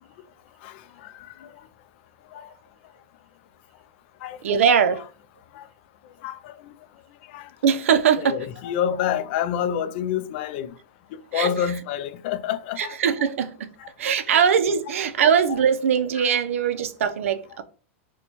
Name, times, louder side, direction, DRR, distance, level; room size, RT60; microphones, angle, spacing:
voice 1, 0.6-1.1 1.4-1.5 2.3-2.5 4.2-4.4 5.5-5.7 6.2-6.7 7.3-7.5 8.2-10.7 11.3-13.0 13.8-13.9 14.3-14.4 16.2-16.3, left 9 dB, 55° left, 0.4 m, -28 dB
voice 2, 4.4-5.1 7.6-8.4 11.3-11.5 12.8-13.7 14.0-17.6, right 7 dB, 90° right, 0.4 m, -21 dB
4.2 x 2.2 x 2.9 m
supercardioid pair, 140°, 7 cm